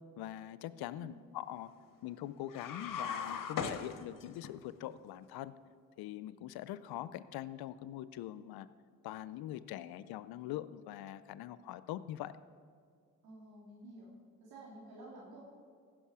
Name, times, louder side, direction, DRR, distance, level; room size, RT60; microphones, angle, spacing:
voice 1, 0.2-1.7 2.0-5.5 6.0-8.7 9.0-12.3, left 13 dB, 70° left, 16 dB, 0.6 m, -43 dB
sound 1, 2.5-4.5, left 6 dB, 55° left, 0.9 m, -39 dB
voice 2, 13.2-14.1 14.4-15.4, right 2 dB, 70° right, -6 dB, 2.8 m, -52 dB
15.5 x 6.1 x 4.9 m, 2.1 s
supercardioid pair, 60°, 38 cm